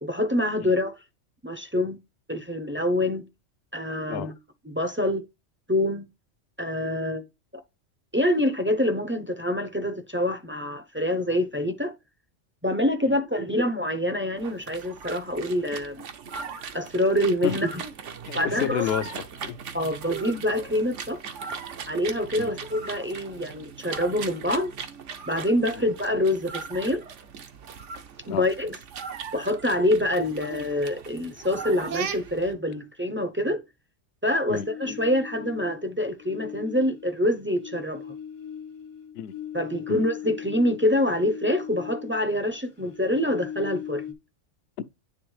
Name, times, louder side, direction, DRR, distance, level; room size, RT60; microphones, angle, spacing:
voice 1, 0.0-0.9 1.4-2.0 2.3-3.3 3.7-4.4 4.6-5.2 5.7-6.1 6.6-7.3 8.1-11.9 12.6-16.1 16.7-17.8 18.3-18.9 19.7-21.3 21.9-24.7 25.3-27.0 28.3-28.8 29.3-33.6 34.2-38.0 39.5-44.0, left 1 dB, 15° right, 0.4 m, -26 dB
sound 1, 14.4-32.5, right 6 dB, 75° right, 1.2 m, -39 dB
voice 2, 18.3-19.6 22.4-22.6 28.3-28.5 34.5-34.7 39.1-39.3 39.9-40.0 44.8-44.9, left 9 dB, 65° left, 0.8 m, -30 dB
sound 2, 34.5-35.8 36.2-42.3 42.5-44.1, left 9 dB, 80° left, 1.3 m, -39 dB
9.6 x 3.5 x 3.1 m
omnidirectional pair, 1.3 m